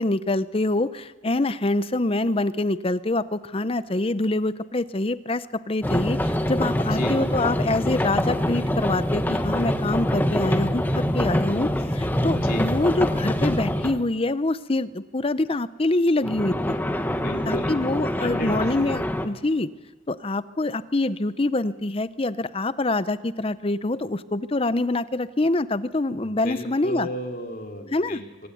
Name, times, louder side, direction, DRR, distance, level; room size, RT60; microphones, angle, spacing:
voice 1, 0.0-16.8 17.5-19.7 20.1-27.1 27.9-28.2, left 2 dB, 30° left, 15 dB, 0.7 m, -25 dB
sound 1, 5.8-14.0 16.2-19.3, equal, 10° left, 1.2 m, -25 dB
voice 2, 6.8-7.2 12.2-12.7 17.2-17.7 18.2-18.7 26.2-28.5, left 1 dB, 50° left, 3 dB, 2.6 m, -34 dB
24.5 x 17.5 x 9.3 m, 1.2 s
head